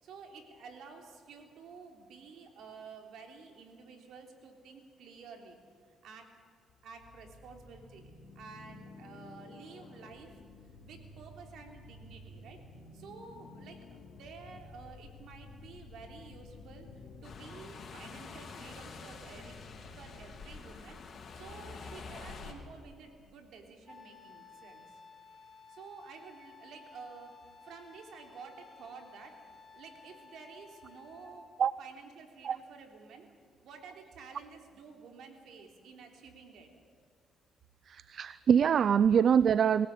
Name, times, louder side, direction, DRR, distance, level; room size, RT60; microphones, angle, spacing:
voice 1, 0.0-5.6 5.9-6.4 6.8-12.6 12.9-16.9 17.2-19.6 19.9-21.0 21.3-25.0 25.7-31.5 31.8-33.3 33.6-36.7, right 5 dB, 75° right, 3 dB, 3.6 m, -51 dB
sound 1, 6.7-20.4, left 3 dB, 65° left, 2.6 m, -52 dB
sound 2, 17.2-22.5, left 4 dB, 50° left, 3.6 m, -47 dB
Wind instrument woodwind instrument, 23.9-31.5, left 4 dB, 30° left, 3.4 m, -55 dB
voice 2, 37.9-39.9, right 8 dB, 55° right, 17 dB, 0.4 m, -24 dB
22.5 x 17.0 x 8.6 m, 2.2 s
cardioid pair, 90°, 0 cm